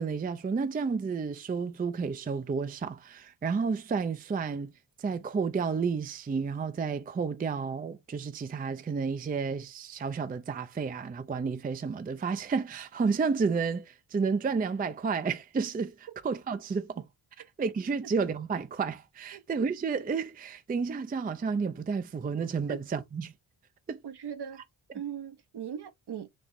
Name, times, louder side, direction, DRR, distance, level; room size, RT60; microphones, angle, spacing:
voice 1, 0.0-4.7 5.0-17.0 17.6-23.3 23.9-24.0, right 5 dB, 20° right, 0.4 m, -31 dB
voice 2, 24.0-24.6 24.9-26.3, right 8 dB, 55° right, 0.8 m, -39 dB
4.2 x 2.4 x 3.1 m
cardioid pair, 65°, 47 cm